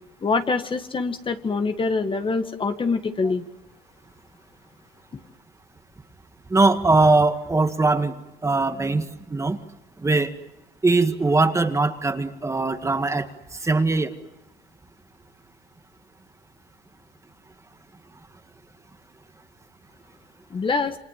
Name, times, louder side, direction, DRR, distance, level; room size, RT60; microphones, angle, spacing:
voice 1, 0.2-3.5 20.5-21.0, left 4 dB, 30° left, 7 dB, 1.8 m, -25 dB
voice 2, 6.5-8.2 8.4-9.1 9.3-9.6 10.0-10.3 10.8-13.3 13.6-14.1, right 3 dB, 15° right, 7 dB, 1.9 m, -20 dB
28.5 x 25.5 x 7.5 m, 0.93 s
cardioid pair, 110°, 17 cm